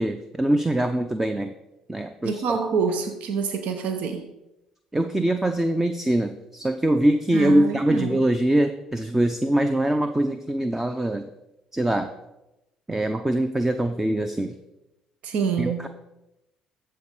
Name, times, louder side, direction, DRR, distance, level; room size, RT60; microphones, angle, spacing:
voice 1, 0.0-1.5 1.9-2.6 4.9-11.2 11.7-12.1 12.9-14.5 15.6-15.9, right 1 dB, 15° right, 8 dB, 0.7 m, -23 dB
voice 2, 2.2-4.3 7.3-8.2 15.2-15.9, right 6 dB, 65° right, 6 dB, 0.9 m, -26 dB
13.5 x 4.6 x 4.9 m, 0.93 s
hypercardioid pair, 55°, 2 cm